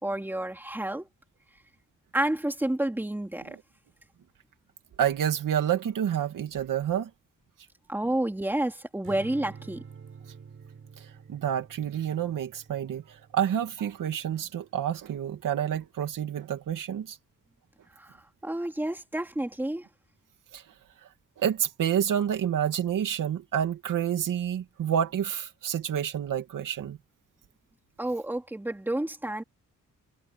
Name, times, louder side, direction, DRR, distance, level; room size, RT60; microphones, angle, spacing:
voice 1, 0.0-1.1 2.1-3.6 7.9-9.8 17.9-19.9 28.0-29.4, right 1 dB, 5° right, 2.9 m, -30 dB
voice 2, 5.0-7.1 11.0-17.2 20.5-20.6 21.0-21.1 21.4-27.0, right 9 dB, 75° right, 2.5 m, -29 dB
Strum, 9.0-15.4, right 6 dB, 40° right, 5.8 m, -49 dB
wide cardioid pair, 180°, 32 cm